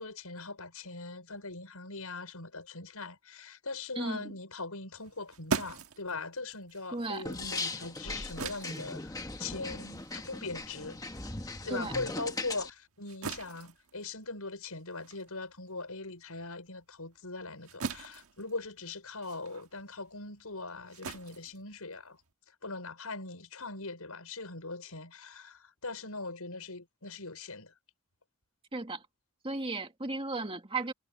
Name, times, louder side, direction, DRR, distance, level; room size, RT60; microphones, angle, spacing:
voice 1, 0.0-11.0 11.6-22.2 22.6-27.7, left 3 dB, 80° left, 6.0 m, -41 dB
voice 2, 4.0-4.3 6.9-7.3 11.7-11.9 28.7-29.0 29.4-30.9, right 3 dB, 25° right, 2.1 m, -35 dB
sound 1, 4.9-11.7 12.1-22.3, right 4 dB, 75° right, 1.5 m, -42 dB
sound 2, 7.3-12.7, left 2 dB, 15° left, 1.3 m, -39 dB
head